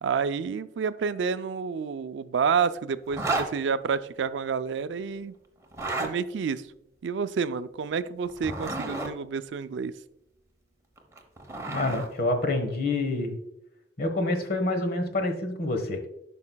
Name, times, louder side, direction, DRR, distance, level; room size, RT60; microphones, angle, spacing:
voice 1, 0.0-5.3 6.0-6.7 7.0-9.9, right 6 dB, 85° right, 13 dB, 0.4 m, -29 dB
Zipper (clothing), 3.1-3.5 5.6-6.1 8.2-9.1 11.0-12.1, right 2 dB, 15° right, 1.0 m, -31 dB
voice 2, 11.7-13.3 14.0-16.1, left 2 dB, 55° left, 6 dB, 1.2 m, -27 dB
12.0 x 5.4 x 2.2 m, 0.82 s
head